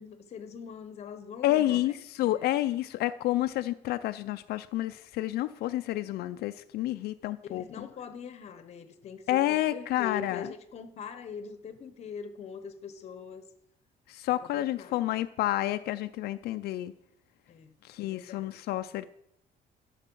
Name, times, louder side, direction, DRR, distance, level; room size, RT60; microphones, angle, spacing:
voice 1, 0.0-1.8 7.4-13.5 14.8-15.0 17.5-17.7 18.0-18.7, left 6 dB, 40° left, 0.9 m, -42 dB
voice 2, 1.4-7.9 9.3-10.5 14.1-16.9 17.8-19.0, left 14 dB, 80° left, 0.4 m, -29 dB
12.5 x 6.5 x 5.4 m
cardioid pair, 175°, 16 cm